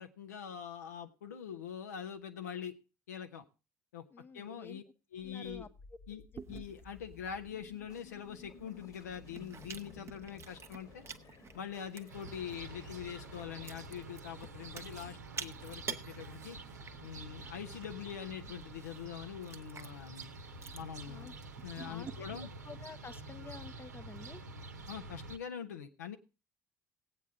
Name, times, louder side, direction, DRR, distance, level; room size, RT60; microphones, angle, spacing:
voice 1, 0.0-2.8 3.1-3.4 3.9-4.0 4.3-4.8 5.1-5.7 6.1-6.2 6.5-11.0 11.5-16.6 17.0-20.3 20.7-21.3 21.6-22.5 24.9-26.2, left 8 dB, 80° left, 7 dB, 0.8 m, -44 dB
voice 2, 4.1-4.8 5.2-5.7 21.1-21.3 21.8-22.4 22.7-24.4, left 4 dB, 25° left, 14 dB, 0.7 m, -50 dB
sound 1, 5.2-16.2, left 5 dB, 45° left, 1.5 m, -57 dB
Chewing mastication, 6.4-22.1, right 6 dB, 30° right, 0.8 m, -50 dB
sound 2, 12.1-25.4, right 3 dB, 85° right, 0.9 m, -48 dB
17.0 x 8.4 x 3.5 m, 0.31 s
figure-of-eight pair, 55°, 9 cm